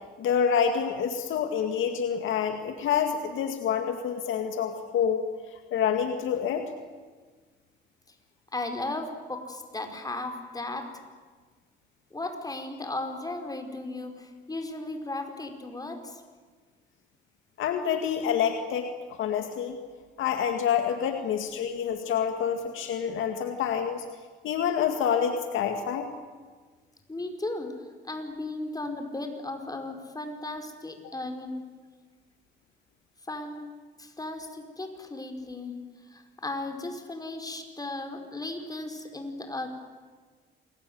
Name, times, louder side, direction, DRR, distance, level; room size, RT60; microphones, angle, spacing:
voice 1, 0.2-5.2 5.5-6.6 17.6-18.9 19.2-19.8 20.2-24.0 24.4-26.1, left 8 dB, 80° left, 5 dB, 2.2 m, -27 dB
voice 2, 8.5-10.9 12.1-16.2 27.1-27.7 28.0-31.6 33.3-33.7 34.0-35.7 36.1-39.7, left 2 dB, 20° left, 6 dB, 5.0 m, -36 dB
28.0 x 21.5 x 9.5 m, 1.4 s
cardioid pair, 90°, 20 cm